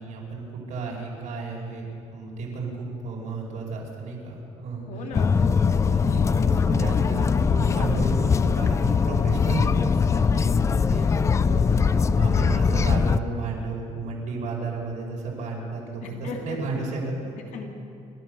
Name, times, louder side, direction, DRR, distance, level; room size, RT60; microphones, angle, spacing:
voice 1, 0.0-4.9 5.3-17.4, right 4 dB, 75° right, -2 dB, 5.6 m, -33 dB
voice 2, 4.9-5.4 11.4-11.9 16.0-16.6 17.5-17.7, left 5 dB, 75° left, 2 dB, 2.9 m, -37 dB
sound 1, 5.1-13.2, left 5 dB, 25° left, 0.4 m, -21 dB
29.0 x 13.0 x 6.9 m, 2.5 s
cardioid pair, 165°, 13 cm